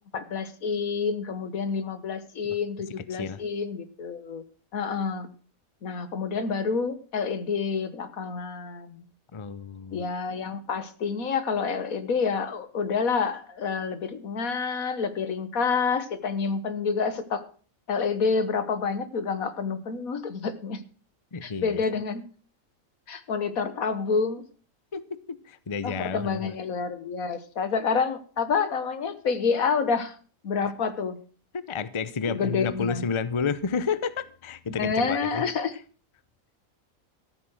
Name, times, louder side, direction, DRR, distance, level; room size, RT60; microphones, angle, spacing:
voice 1, 0.1-4.4 4.7-5.3 5.8-9.0 9.9-17.4 17.9-20.8 21.4-22.2 23.1-24.4 25.8-30.2 30.4-31.2 32.3-33.0 34.8-35.7, left 5 dB, 80° left, 12 dB, 1.8 m, -28 dB
voice 2, 3.1-3.4 9.3-10.0 21.3-21.8 24.9-26.6 31.5-35.5, left 5 dB, 30° left, 16 dB, 0.6 m, -31 dB
14.0 x 8.4 x 6.4 m, 0.40 s
omnidirectional pair, 1.5 m